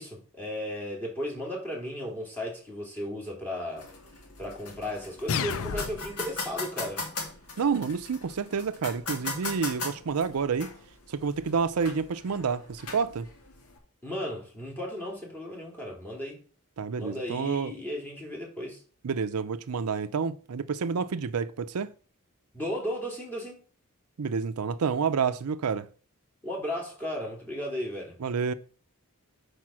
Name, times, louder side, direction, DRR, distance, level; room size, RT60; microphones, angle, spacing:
voice 1, 0.0-3.9 4.4-7.0 14.0-16.4 16.9-18.8 22.5-23.6 26.4-28.1, left 1 dB, 10° left, 2.7 m, -35 dB
sound 1, 3.8-13.8, left 3 dB, 85° left, 2.0 m, -39 dB
sound 2, 5.3-6.3, left 6 dB, 65° left, 0.5 m, -31 dB
voice 2, 7.6-10.7 11.1-13.3 16.8-17.7 19.0-21.9 24.2-25.9 28.2-28.5, right 5 dB, 80° right, 0.5 m, -29 dB
5.8 x 5.0 x 6.2 m
head